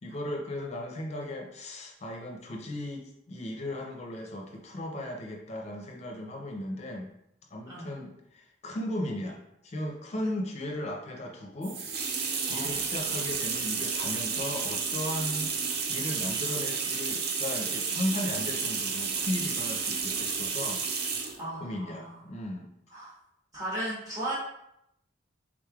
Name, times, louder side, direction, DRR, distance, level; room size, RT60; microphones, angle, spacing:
voice 1, 0.0-7.1 7.5-9.4 9.6-15.5 15.9-22.7, left 1 dB, 35° left, 1 dB, 0.5 m, -36 dB
sound 1, 11.6-21.4, right 5 dB, 55° right, 0.5 m, -31 dB
voice 2, 12.5-12.8 21.4-22.2 22.9-23.1 23.5-24.4, right 1 dB, 20° right, -7 dB, 1.1 m, -36 dB
3.7 x 3.3 x 2.3 m, 0.78 s
head